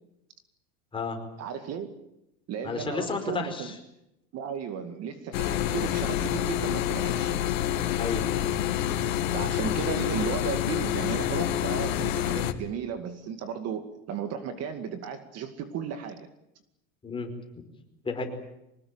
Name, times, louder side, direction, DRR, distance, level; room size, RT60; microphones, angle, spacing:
voice 1, 1.4-1.9 2.5-3.8 4.3-7.3 9.3-16.3, right 7 dB, 40° right, 8 dB, 2.3 m, -35 dB
voice 2, 2.6-3.7 8.0-8.3 17.0-17.3 18.0-18.2, left 4 dB, 15° left, 4 dB, 5.1 m, -31 dB
sound 1, 5.3-12.5, left 11 dB, 90° left, 2.3 m, -27 dB
24.5 x 20.0 x 9.0 m, 0.85 s
supercardioid pair, 150°, 39 cm